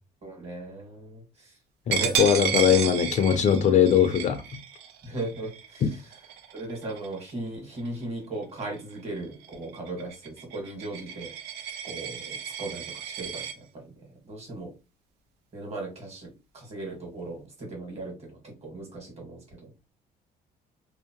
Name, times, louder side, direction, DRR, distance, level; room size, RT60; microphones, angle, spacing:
voice 1, 0.2-1.2 1.9-2.1 5.0-5.8 6.5-11.3 11.8-13.4 13.7-13.8 14.2-14.7 15.5-19.4, right 2 dB, 40° right, 1.5 m, -37 dB
voice 2, 1.9-4.4 5.8-5.9, left 8 dB, 45° left, 0.4 m, -21 dB
Coin (dropping), 1.9-7.3 7.8-8.0 8.4-13.5, right 8 dB, 75° right, 0.5 m, -33 dB
2.8 x 2.0 x 2.8 m
cardioid pair, 110°, 17 cm